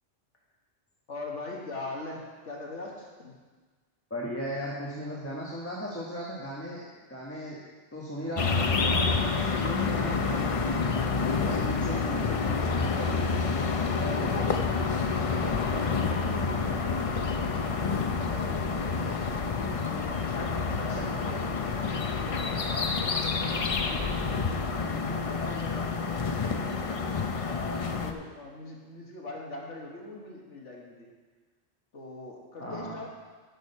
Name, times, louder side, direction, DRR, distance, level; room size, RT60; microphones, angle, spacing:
voice 1, 1.1-3.4 14.3-14.7 15.0-19.4 19.9-24.1 24.3-26.1 26.5-31.1 31.9-33.1, left 2 dB, 70° left, -2 dB, 1.9 m, -42 dB
voice 2, 4.1-7.6 7.9-10.8 11.2-13.3 14.0-14.5 21.0-21.2 32.6-32.9, equal, 10° left, -5 dB, 1.2 m, -37 dB
sound 1, 8.4-28.1, left 4 dB, 40° left, 0.5 m, -28 dB
11.0 x 6.4 x 5.4 m, 1.4 s
omnidirectional pair, 1.3 m